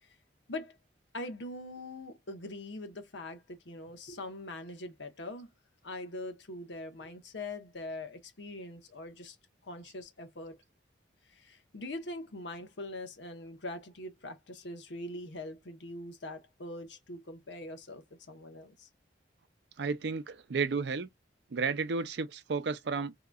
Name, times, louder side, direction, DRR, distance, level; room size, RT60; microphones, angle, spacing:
voice 1, 1.1-5.5 5.8-9.4 9.6-10.6 11.3-18.9, left 2 dB, 75° left, 1.0 m, -42 dB
voice 2, 19.8-21.1 21.5-23.1, right 4 dB, 65° right, 0.5 m, -32 dB
3.7 x 2.9 x 2.3 m
head